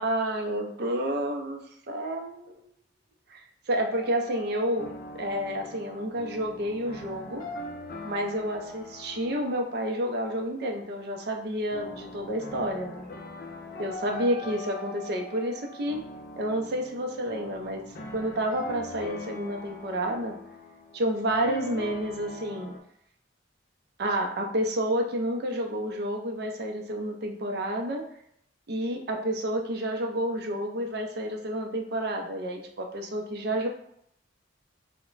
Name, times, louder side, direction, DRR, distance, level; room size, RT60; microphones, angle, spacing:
voice 1, 0.0-1.6 1.9-2.6 3.3-4.9 5.2-7.4 8.0-13.1 13.8-16.0 16.4-17.8 18.1-20.4 20.9-22.7 24.0-28.0 28.7-33.7, right 1 dB, 55° right, 2 dB, 0.4 m, -30 dB
sound 1, 3.9-22.8, left 1 dB, 50° left, 0.4 m, -42 dB
2.1 x 2.0 x 3.7 m, 0.71 s
head